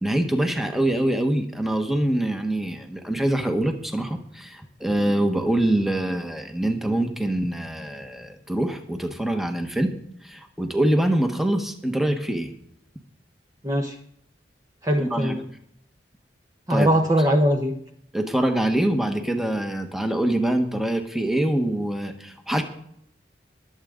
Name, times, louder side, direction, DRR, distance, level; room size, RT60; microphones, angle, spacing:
voice 1, 0.0-9.9 10.2-12.5 15.0-15.3 16.7-16.9 18.1-22.6, right 1 dB, ahead, 5 dB, 1.3 m, -24 dB
voice 2, 13.6-14.0 14.8-15.4 16.7-17.8, equal, 20° right, 3 dB, 0.9 m, -21 dB
22.5 x 8.2 x 3.8 m, 0.72 s
head